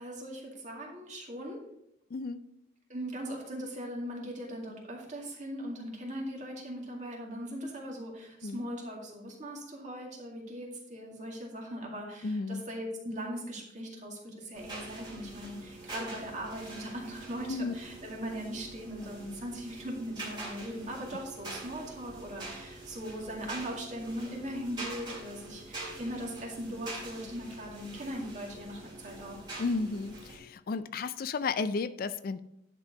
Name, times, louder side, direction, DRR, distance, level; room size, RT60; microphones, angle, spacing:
voice 1, 0.0-1.6 2.9-29.5, equal, 40° right, -1 dB, 2.1 m, -39 dB
voice 2, 2.1-2.4 8.4-8.6 12.2-12.7 17.5-17.7 29.6-32.4, left 4 dB, 50° left, 13 dB, 0.4 m, -33 dB
sound 1, 14.5-30.4, right 2 dB, 25° right, 2.6 m, -45 dB
10.5 x 4.6 x 5.1 m, 0.78 s
head